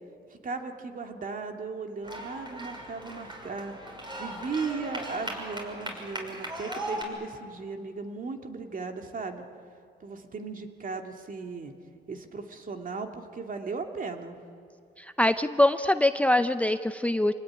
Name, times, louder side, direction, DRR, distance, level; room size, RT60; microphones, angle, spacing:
voice 1, 0.4-9.4 10.0-11.7 12.1-14.4, right 4 dB, 45° right, 4 dB, 2.6 m, -37 dB
sound 1, 2.0-7.0, right 1 dB, 25° right, 6.1 m, -38 dB
voice 2, 15.0-17.3, left 1 dB, 5° left, 11 dB, 0.6 m, -23 dB
26.5 x 19.0 x 9.9 m, 2.3 s
cardioid pair, 90°, 20 cm